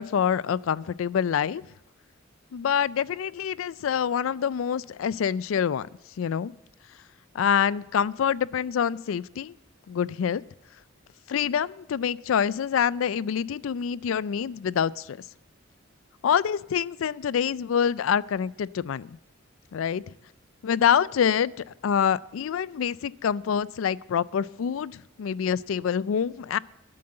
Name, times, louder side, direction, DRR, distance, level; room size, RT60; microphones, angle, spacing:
voice 1, 0.0-1.7 2.5-5.9 6.2-6.5 7.3-9.5 9.9-10.4 11.3-15.2 16.2-19.2 19.7-20.1 20.6-21.5 21.8-26.6, left 8 dB, 80° left, 21 dB, 0.4 m, -26 dB
12.5 x 7.7 x 7.7 m, 0.86 s
head